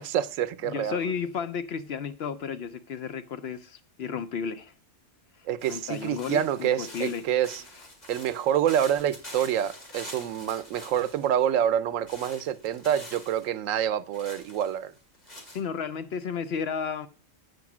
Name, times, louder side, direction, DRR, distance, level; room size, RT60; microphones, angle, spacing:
voice 1, 0.0-1.0 5.5-7.6 8.1-14.9, right 10 dB, 90° right, 1.0 m, -27 dB
voice 2, 0.6-4.7 5.4-7.3 15.5-17.1, left 6 dB, 65° left, 0.7 m, -33 dB
sound 1, 5.6-11.5 12.1-13.5 14.1-15.6, left 1 dB, 35° left, 2.1 m, -46 dB
8.1 x 5.3 x 6.0 m
omnidirectional pair, 1.3 m